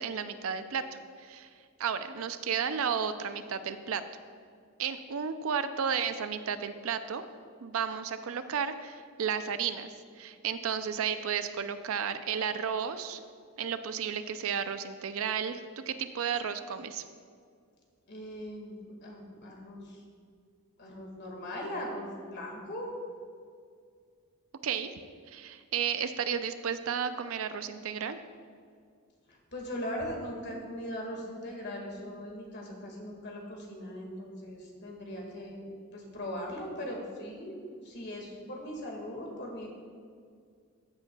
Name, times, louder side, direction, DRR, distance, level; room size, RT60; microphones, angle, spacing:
voice 1, 0.0-1.5 1.8-4.0 4.8-7.2 7.6-13.2 13.6-17.0 24.6-24.9 25.3-28.2, right 7 dB, 65° right, 11 dB, 0.5 m, -33 dB
voice 2, 18.1-20.0 20.8-23.0 29.3-35.7 35.9-37.6 37.8-39.7, equal, 50° left, 0 dB, 1.9 m, -39 dB
14.5 x 8.1 x 2.3 m, 2.1 s
head